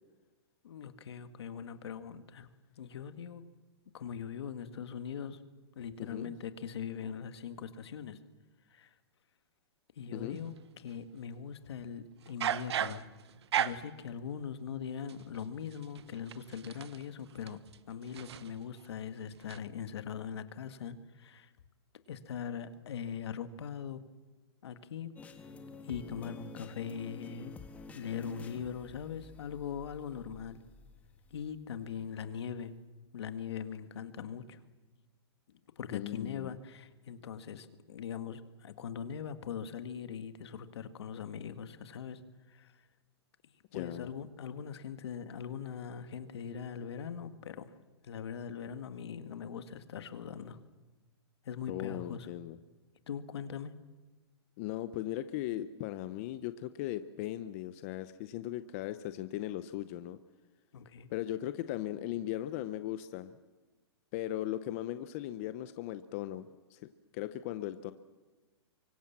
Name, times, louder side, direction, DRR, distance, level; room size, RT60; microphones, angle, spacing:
voice 1, 0.6-2.5 2.8-3.4 3.9-5.4 5.8-8.2 8.7-8.9 10.0-13.1 13.6-17.6 17.9-21.5 22.1-24.0 24.6-25.1 25.8-27.6 27.9-30.6 31.3-32.7 33.1-34.6 35.5-42.2 42.5-42.8 43.7-47.7 48.0-50.6 51.4-52.3 53.1-53.7 60.7-61.1, left 7 dB, 70° left, 10 dB, 1.9 m, -41 dB
voice 2, 6.0-6.3 10.1-10.4 35.9-36.6 43.7-44.1 51.7-52.6 54.6-60.2 61.1-63.3 64.1-66.8 67.1-67.9, left 13 dB, 30° left, 12 dB, 0.7 m, -38 dB
sound 1, 10.4-11.0 12.2-14.0 15.1-18.9 19.2-19.6, right 9 dB, 75° right, 1.0 m, -37 dB
sound 2, 25.2-32.0, left 4 dB, 10° left, 1.3 m, -50 dB
24.5 x 23.5 x 7.4 m, 1.2 s
hypercardioid pair, 165°, 14 cm